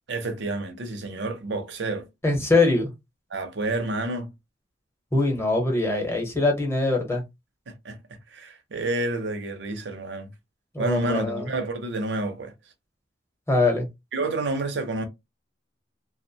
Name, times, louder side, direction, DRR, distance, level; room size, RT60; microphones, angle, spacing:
voice 1, 0.1-2.1 3.3-4.3 7.7-8.0 8.3-10.3 10.8-12.5 14.1-15.1, right 2 dB, 75° right, 0.6 m, -29 dB
voice 2, 2.2-2.9 5.1-7.2 10.7-11.5 13.5-13.9, left 2 dB, 15° left, 0.8 m, -22 dB
2.4 x 2.1 x 2.6 m
head